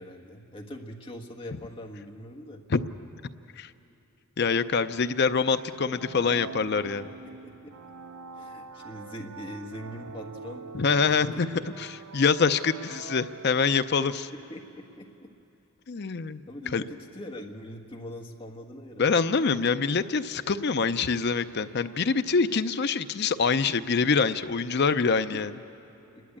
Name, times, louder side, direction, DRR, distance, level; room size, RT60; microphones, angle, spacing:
voice 1, 0.0-2.6 7.2-7.9 8.3-11.5 14.3-15.3 16.0-16.1 16.5-19.0, equal, 25° left, 0 dB, 1.5 m, -42 dB
voice 2, 4.4-7.1 10.7-11.5 11.8-14.3 15.9-16.4 16.7-16.8 19.0-25.5, left 5 dB, 50° left, 11 dB, 0.5 m, -25 dB
sound 1, 5.7-14.3, right 5 dB, 85° right, 0.7 m, -44 dB
28.0 x 11.0 x 8.5 m, 2.9 s
head